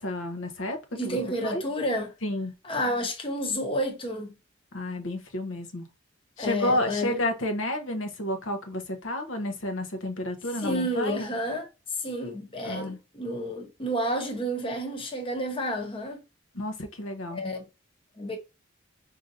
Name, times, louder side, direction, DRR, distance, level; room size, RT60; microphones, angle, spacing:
voice 1, 0.0-1.2 1.4-1.6 2.2-2.5 4.7-5.9 6.4-11.3 12.6-13.0 16.5-17.4, left 1 dB, 75° left, 0.9 m, -31 dB
voice 2, 0.9-2.1 2.6-4.3 6.4-7.1 10.6-11.7 12.0-16.2 17.3-17.6 18.2-18.4, equal, 25° left, 1.0 m, -30 dB
5.0 x 2.8 x 2.5 m
head